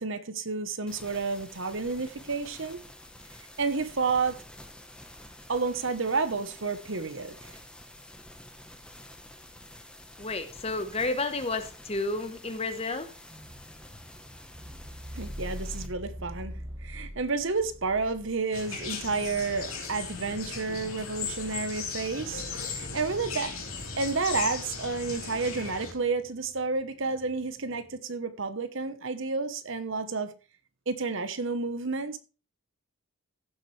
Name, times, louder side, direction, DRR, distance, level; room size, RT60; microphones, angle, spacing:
voice 1, 0.0-2.8 3.6-4.4 5.5-7.6 15.1-16.5 16.8-23.5 24.0-30.3 30.9-32.2, right 4 dB, 60° right, 1.1 m, -30 dB
sound 1, 0.9-15.9, left 1 dB, 5° left, 1.1 m, -49 dB
voice 2, 10.2-13.1, left 3 dB, 25° left, 1.1 m, -31 dB
sound 2, 12.2-12.5 13.3-28.0, equal, 10° right, 1.3 m, -46 dB
sound 3, 18.5-25.9, left 5 dB, 75° left, 2.8 m, -37 dB
15.5 x 7.3 x 3.3 m
head